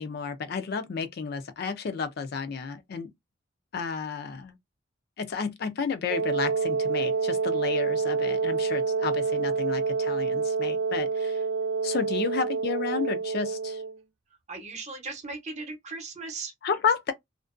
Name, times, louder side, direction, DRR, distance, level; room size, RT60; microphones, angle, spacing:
voice 1, 0.0-3.1 3.7-4.6 5.2-11.4 11.8-13.8 16.6-17.1, left 5 dB, 50° left, 0.4 m, -31 dB
Wind instrument woodwind instrument, 6.1-14.0, right 4 dB, 75° right, 0.3 m, -27 dB
voice 2, 14.5-16.5, right 3 dB, 35° right, 0.7 m, -37 dB
2.4 x 2.1 x 2.4 m
head